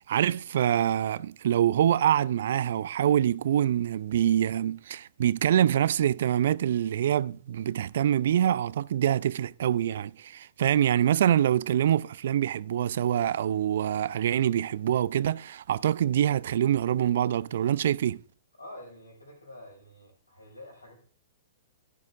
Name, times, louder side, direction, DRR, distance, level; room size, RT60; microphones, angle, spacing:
voice 1, 0.0-18.2, right 10 dB, 60° right, 0.3 m, -25 dB
voice 2, 18.6-21.0, left 1 dB, 90° left, 5.0 m, -47 dB
14.5 x 10.5 x 2.4 m
figure-of-eight pair, 110°, 0 cm